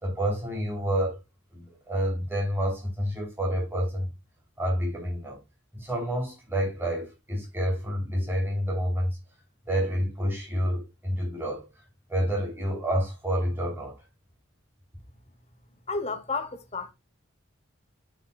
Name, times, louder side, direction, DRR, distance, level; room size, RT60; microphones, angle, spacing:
voice 1, 0.0-1.2 1.5-4.1 4.6-5.4 5.7-9.2 9.7-11.7 12.1-14.0, equal, 10° right, 3.5 m, -28 dB
voice 2, 15.9-16.9, left 4 dB, 30° left, 1.1 m, -31 dB
11.5 x 5.7 x 2.4 m
head